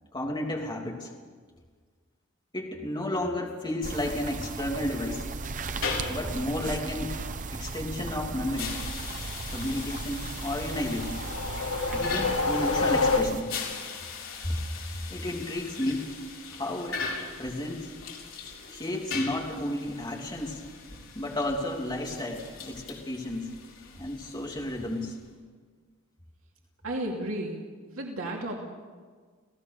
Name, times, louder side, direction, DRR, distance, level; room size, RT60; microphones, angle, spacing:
voice 1, 0.1-1.1 2.5-5.2 6.1-7.1 7.5-8.7 9.5-11.2 11.9-13.5 14.4-14.6 15.1-16.1 16.5-17.0 17.4-17.9 18.7-20.6 21.1-23.4 24.0-25.1, left 1 dB, 20° left, -1 dB, 3.1 m, -32 dB
sound 1, 3.8-13.4, right 3 dB, 40° right, 0.9 m, -36 dB
sound 2, 5.6-25.3, left 5 dB, 70° left, 5.3 m, -40 dB
sound 3, 10.6-13.7, left 3 dB, 90° left, 1.7 m, -28 dB
voice 2, 26.8-28.6, right 1 dB, 75° right, -1 dB, 2.7 m, -33 dB
28.0 x 17.0 x 6.8 m, 1.5 s
head